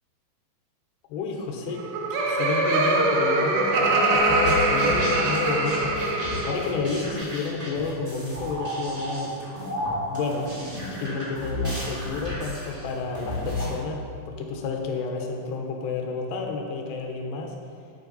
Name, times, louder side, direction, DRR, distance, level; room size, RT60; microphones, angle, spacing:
voice 1, 1.1-1.8 2.1-5.9 6.5-9.4 10.1-10.5 11.0-14.0 14.3-17.5, left 4 dB, 85° left, 2 dB, 3.1 m, -31 dB
Laughter, 1.6-6.9, right 2 dB, 80° right, 3.1 m, -23 dB
Bowed string instrument, 3.7-7.4, left 3 dB, 35° left, 2.3 m, -33 dB
sound 1, 4.1-13.8, left 1 dB, 25° right, 1.0 m, -33 dB
12.5 x 6.9 x 4.0 m, 2.3 s
omnidirectional pair, 4.8 m